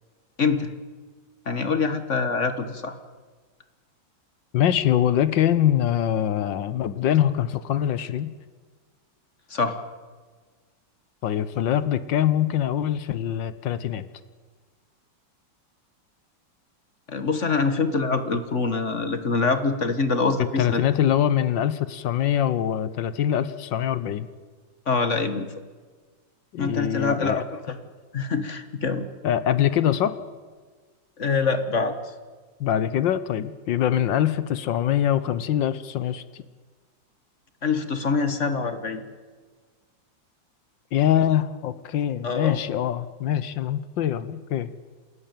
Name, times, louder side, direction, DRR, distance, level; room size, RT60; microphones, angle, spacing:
voice 1, 0.4-0.7 1.4-3.0 9.5-9.8 17.1-20.8 24.8-25.5 26.6-27.8 28.1-29.1 31.2-32.1 37.6-39.0 42.2-42.6, left 4 dB, 40° left, 10 dB, 1.6 m, -25 dB
voice 2, 4.5-8.3 11.2-14.0 20.4-24.3 26.5-27.4 29.2-30.2 32.6-36.4 40.9-44.7, left 10 dB, 75° left, 14 dB, 1.6 m, -23 dB
28.0 x 13.5 x 9.1 m, 1.4 s
omnidirectional pair, 2.1 m